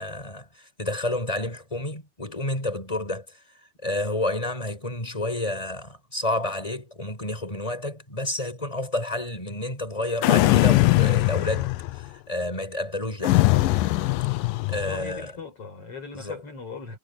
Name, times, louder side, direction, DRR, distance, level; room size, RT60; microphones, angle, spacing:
voice 1, 0.0-3.4 3.8-11.7 11.9-13.4 14.7-15.3 16.1-16.4, left 2 dB, 10° left, 7.6 m, -30 dB
sound 1, 10.2-12.1 13.2-15.0, left 18 dB, 80° left, 2.4 m, -21 dB
voice 2, 14.8-17.0, left 5 dB, 40° left, 6.3 m, -39 dB
omnidirectional pair, 4.1 m